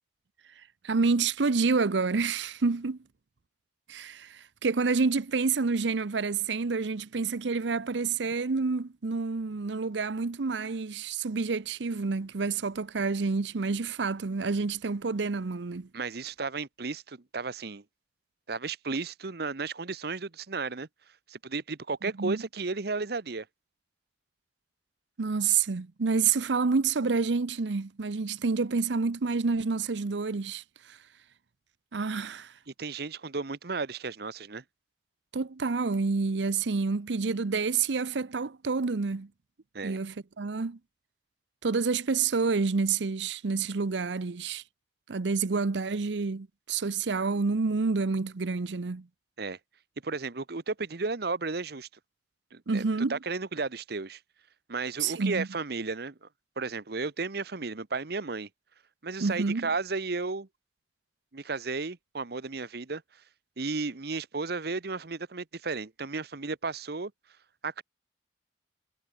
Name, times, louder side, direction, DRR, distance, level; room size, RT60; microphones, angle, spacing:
voice 1, 0.8-3.0 3.9-15.9 22.0-22.4 25.2-31.0 31.9-32.5 35.3-39.3 39.8-40.8 41.6-44.6 45.1-49.1 52.7-53.2 55.0-55.5 59.2-59.7, right 4 dB, 85° right, 0.7 m, -28 dB
voice 2, 15.9-17.8 18.5-20.9 21.3-23.5 32.8-34.6 39.7-40.0 49.4-49.6 50.0-51.9 52.5-52.8 53.1-54.2 54.7-56.3 56.6-58.5 59.0-60.5 61.3-63.0 63.6-67.1 67.6-67.8, right 4 dB, 60° right, 1.0 m, -34 dB
head